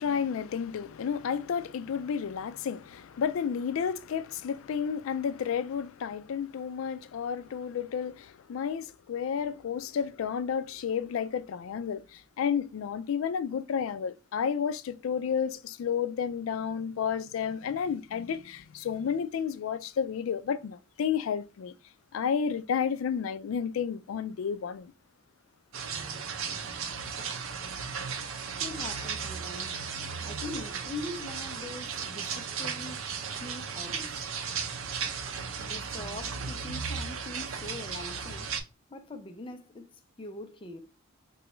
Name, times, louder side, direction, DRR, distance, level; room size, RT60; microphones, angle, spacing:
voice 1, 0.0-21.7 22.1-24.9 26.1-26.2, left 7 dB, 85° left, 0.3 m, -31 dB
sound 1, 25.7-38.6, right 6 dB, 85° right, 0.6 m, -35 dB
voice 2, 28.6-29.8 30.2-33.1 33.3-34.3 35.6-38.6 38.9-40.8, left 2 dB, 25° left, 0.4 m, -42 dB
3.9 x 2.2 x 3.0 m
head